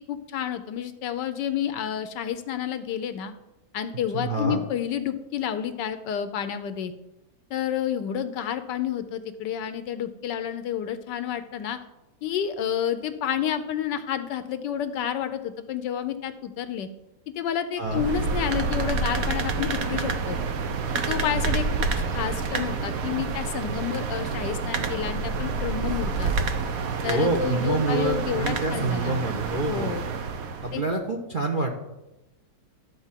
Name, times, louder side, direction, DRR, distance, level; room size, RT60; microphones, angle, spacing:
voice 1, 0.1-3.3 3.7-6.9 7.5-11.8 12.2-16.9 17.4-20.4 21.1-21.6 22.1-26.4 27.0-29.2 29.6-30.0 30.7-30.8, left 9 dB, 70° left, 11 dB, 1.2 m, -30 dB
voice 2, 4.1-4.6 17.8-18.0 27.1-29.9 30.6-31.7, right 3 dB, 40° right, 1 dB, 0.8 m, -27 dB
sound 1, 17.8-30.8, right 4 dB, 55° right, 1.1 m, -28 dB
12.5 x 4.2 x 7.4 m, 0.97 s
omnidirectional pair, 2.1 m